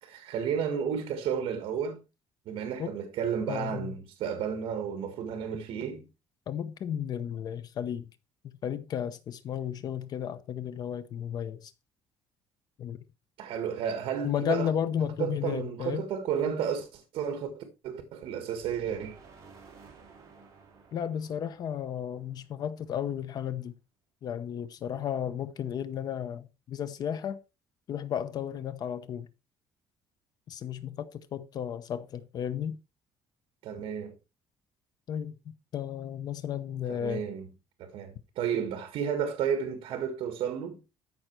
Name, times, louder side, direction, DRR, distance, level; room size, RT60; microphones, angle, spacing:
voice 1, 0.0-2.0 2.5-6.1 13.4-14.7 15.2-19.2 33.6-34.1 36.9-37.5 37.8-40.8, right 7 dB, 60° right, 1.8 m, -32 dB
voice 2, 3.5-3.9 6.5-8.0 8.6-11.7 12.8-13.0 14.2-16.0 20.9-23.7 24.2-27.4 27.9-29.3 30.5-32.8 35.1-35.3 35.7-37.3, left 9 dB, 40° left, 0.8 m, -33 dB
sound 1, 18.6-22.7, right 5 dB, 30° right, 3.7 m, -54 dB
13.5 x 5.7 x 4.6 m
cardioid pair, 175°, 10 cm